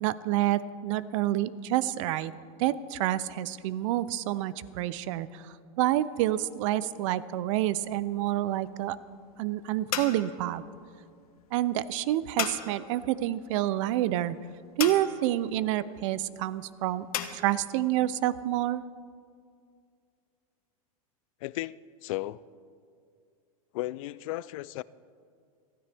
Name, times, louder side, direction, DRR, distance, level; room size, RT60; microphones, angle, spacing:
voice 1, 0.0-2.3 2.6-9.0 9.4-10.6 11.5-14.4 14.8-17.1 17.3-18.8, right 14 dB, 60° right, 0.6 m, -28 dB
sound 1, 7.7-17.3, left 10 dB, 85° left, 1.1 m, -39 dB
voice 2, 21.4-22.4 23.7-24.8, left 17 dB, 65° left, 0.4 m, -35 dB
28.5 x 9.9 x 3.5 m
supercardioid pair, 125°, 19 cm